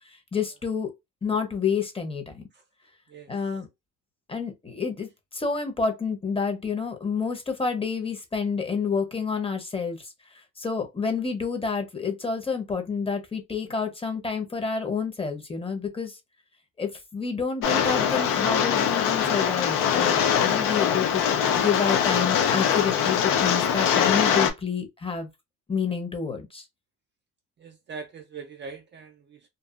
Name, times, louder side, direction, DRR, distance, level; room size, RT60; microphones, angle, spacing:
voice 1, 0.1-0.9 1.2-2.4 3.3-3.7 4.3-10.1 10.6-16.2 16.8-25.3 25.7-26.6, left 5 dB, 15° left, 0.8 m, -29 dB
Rain, 17.6-24.5, left 8 dB, 80° left, 0.7 m, -23 dB
voice 2, 27.6-29.5, right 5 dB, 35° right, 0.5 m, -41 dB
2.6 x 2.4 x 2.4 m
cardioid pair, 125°, 33 cm